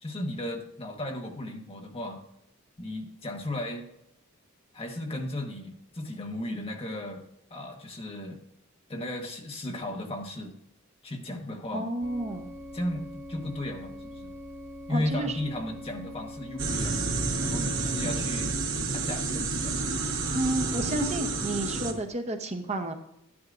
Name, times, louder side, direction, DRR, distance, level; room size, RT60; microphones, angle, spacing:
voice 1, 0.0-2.2 2.8-3.9 4.7-7.2 7.5-8.4 8.9-10.5 11.0-11.9 12.7-14.3 14.9-17.0 17.4-18.5 18.9-19.7 21.6-21.8, left 1 dB, 25° left, 2 dB, 1.2 m, -35 dB
voice 2, 11.7-12.5 14.9-15.4 20.3-22.9, right 1 dB, 30° right, 5 dB, 0.7 m, -31 dB
sound 1, 12.0-18.5, left 1 dB, 10° right, 1.8 m, -43 dB
sound 2, 16.6-21.9, right 3 dB, 60° right, 1.2 m, -29 dB
12.5 x 9.6 x 2.5 m, 0.80 s
head